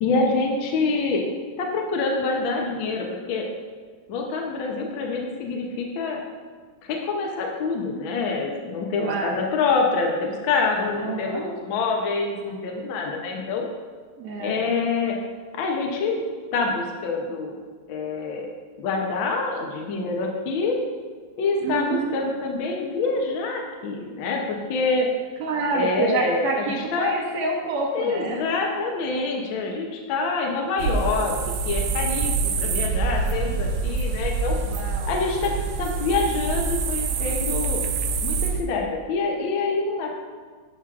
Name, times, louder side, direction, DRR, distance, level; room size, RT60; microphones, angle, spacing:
voice 1, 0.0-1.3 1.6-3.5 4.1-6.2 6.9-13.7 14.4-15.2 15.5-16.2 16.5-17.6 17.9-18.5 18.8-20.7 21.4-25.1 25.7-27.1 27.9-31.3 31.6-32.3 32.6-34.6 35.1-35.5 35.8-37.8 38.2-40.1, left 4 dB, 70° left, 0 dB, 1.5 m, -26 dB
voice 2, 9.0-9.4 10.9-11.4 14.2-14.6 21.6-22.2 25.4-28.4 34.6-35.1, right 3 dB, 60° right, -2 dB, 1.1 m, -27 dB
sound 1, 30.8-38.6, right 4 dB, 90° right, 1.6 m, -26 dB
11.5 x 6.2 x 2.4 m, 1.5 s
omnidirectional pair, 2.4 m